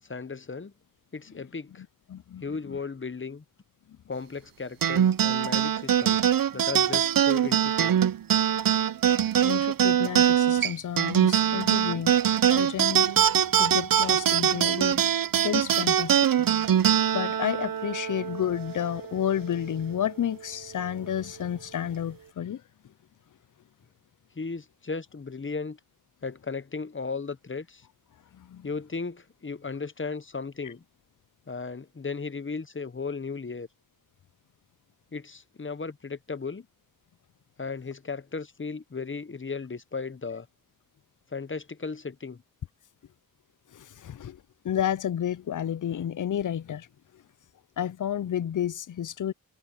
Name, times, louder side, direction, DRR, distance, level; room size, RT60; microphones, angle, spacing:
voice 1, 0.1-0.7 1.1-1.8 2.4-3.4 4.1-6.2 6.5-7.9 24.4-25.8 26.2-27.8 28.6-30.8 31.5-33.7 35.1-36.7 37.6-40.5 41.3-42.4, left 4 dB, 35° left, 0.9 m, -35 dB
voice 2, 2.1-2.8 9.4-12.2 12.5-13.1 13.6-16.2 17.1-22.6 28.5-28.7 30.6-30.7 44.0-44.4 44.6-46.9 47.8-49.3, left 10 dB, 60° left, 0.5 m, -31 dB
sound 1, 4.8-19.6, right 9 dB, 70° right, 0.6 m, -23 dB
cardioid pair, 50°, 36 cm